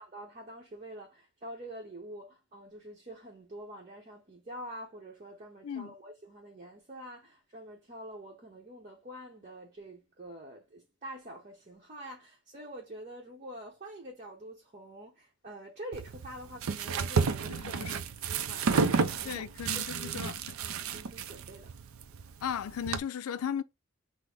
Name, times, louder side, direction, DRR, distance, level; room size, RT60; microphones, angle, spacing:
voice 1, 0.0-19.5 19.9-21.7, right 1 dB, 35° right, 0.8 m, -46 dB
sound 1, 15.9-23.0, right 5 dB, 80° right, 0.4 m, -32 dB
voice 2, 17.5-17.9 19.3-20.4 22.4-23.6, left 8 dB, 90° left, 0.4 m, -36 dB
6.0 x 2.0 x 3.3 m
head